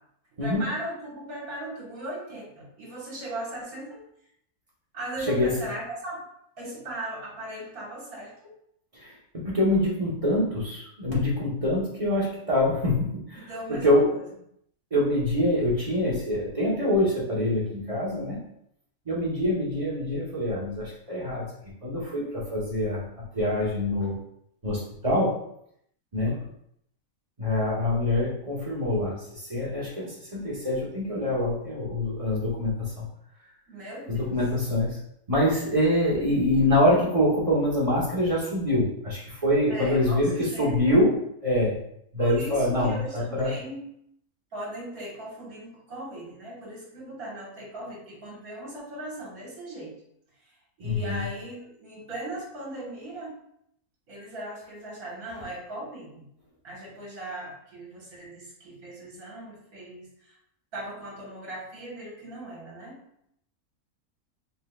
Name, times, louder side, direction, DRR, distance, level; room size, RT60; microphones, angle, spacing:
voice 1, 0.4-4.0 4.9-6.2 6.6-8.5 13.4-14.2 33.7-34.4 39.7-40.8 42.2-43.8 44.5-49.9 50.8-53.3 54.1-56.3 56.6-60.1 60.7-63.0, right 1 dB, 70° right, -5 dB, 2.1 m, -38 dB
voice 2, 8.9-14.1 14.9-18.4 19.1-21.5 21.8-23.0 23.3-24.2 24.6-25.4 26.1-26.4 27.4-33.0 34.1-35.0 35.3-41.2 41.4-41.8 42.1-43.6 50.8-51.3, left 1 dB, 25° right, -5 dB, 1.1 m, -25 dB
4.2 x 3.9 x 2.4 m, 0.73 s
omnidirectional pair, 1.6 m